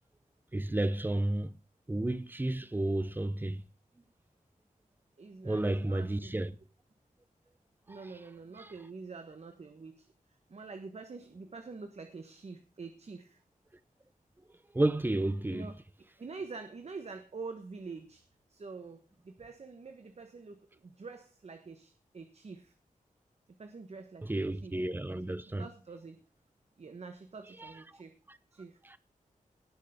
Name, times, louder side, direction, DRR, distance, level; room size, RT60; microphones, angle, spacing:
voice 1, 0.5-1.5 1.9-3.6 5.4-6.6 7.9-8.2 8.6-8.7 14.7-15.7 24.2-25.7 27.6-27.7 28.3-28.4 28.8-29.0, right 1 dB, 15° right, 0.9 m, -32 dB
voice 2, 5.2-6.5 7.9-10.1 10.5-13.4 15.5-15.7 16.2-18.2 18.5-22.7 23.6-24.8 25.6-26.2 26.8-28.2 28.5-28.8, right 4 dB, 50° right, 1.4 m, -46 dB
18.0 x 6.6 x 5.2 m
wide cardioid pair, 130°, 14 cm